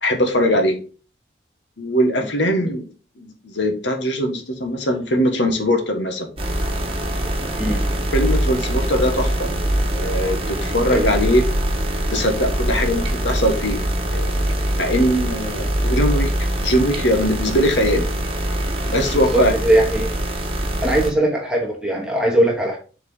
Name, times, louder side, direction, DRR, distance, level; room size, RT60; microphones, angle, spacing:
voice 1, 0.0-0.8 1.8-2.8 3.2-6.3 8.1-9.5 9.9-11.4 12.1-16.3 16.6-18.1 18.9-19.5, equal, 80° left, 5 dB, 1.5 m, -21 dB
sound 1, 6.4-21.1, right 1 dB, 30° right, 1.4 m, -23 dB
voice 2, 19.1-20.1 20.8-22.8, right 1 dB, 5° right, -2 dB, 1.4 m, -20 dB
4.9 x 4.6 x 5.4 m, 0.37 s
head